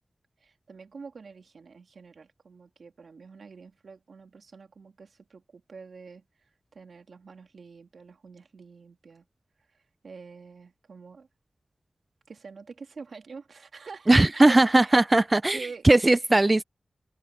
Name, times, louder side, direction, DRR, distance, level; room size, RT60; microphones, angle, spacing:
voice 1, 0.4-9.3 9.7-11.3 12.3-14.6 14.8-14.9 15.5-15.9, right 4 dB, 85° right, 2.3 m, -46 dB
voice 2, 14.1-15.6 15.8-16.6, right 2 dB, 25° right, 0.4 m, -18 dB
open air
wide cardioid pair, 85°, 0 cm